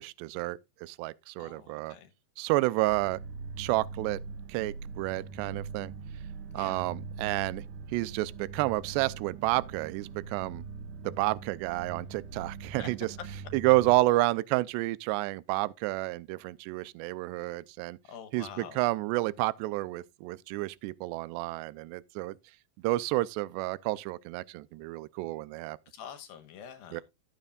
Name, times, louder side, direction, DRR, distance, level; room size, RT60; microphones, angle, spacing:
voice 1, 0.0-2.0 2.4-3.2 3.6-4.2 4.5-5.9 6.5-10.6 11.0-13.1 13.5-18.0 18.3-22.3 22.8-25.8 26.9-27.0, right 19 dB, 85° right, 2.8 m, -30 dB
voice 2, 1.4-2.1 6.5-6.9 12.8-12.9 13.6-13.7 18.1-18.9 25.9-27.0, left 8 dB, 70° left, 2.7 m, -46 dB
sound 1, 2.9-13.9, right 5 dB, 70° right, 2.1 m, -42 dB
13.5 x 8.8 x 2.4 m
omnidirectional pair, 4.9 m